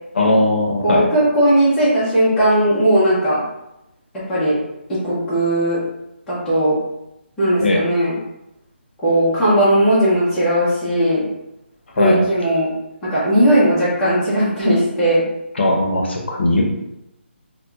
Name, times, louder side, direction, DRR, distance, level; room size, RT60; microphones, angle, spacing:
voice 1, 0.1-1.0 7.6-7.8 12.0-12.2 15.6-16.6, left 1 dB, 65° left, 0 dB, 0.6 m, -18 dB
voice 2, 0.8-3.4 4.3-4.5 5.0-5.8 6.3-6.8 7.4-8.1 9.0-11.3 12.0-12.7 13.1-15.2, right 1 dB, 5° left, -12 dB, 0.5 m, -17 dB
2.7 x 2.1 x 2.3 m, 0.88 s
hypercardioid pair, 170°, 6 cm